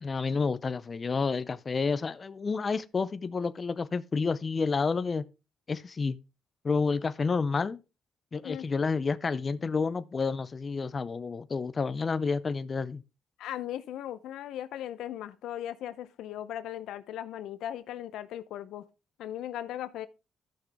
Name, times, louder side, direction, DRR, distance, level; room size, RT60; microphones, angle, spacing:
voice 1, 0.0-5.2 5.7-6.2 6.6-7.8 8.3-13.0, left 4 dB, 35° left, 0.5 m, -30 dB
voice 2, 13.4-18.8 19.2-20.1, left 11 dB, 85° left, 0.7 m, -38 dB
13.0 x 6.0 x 3.5 m
cardioid pair, 90°, 0 cm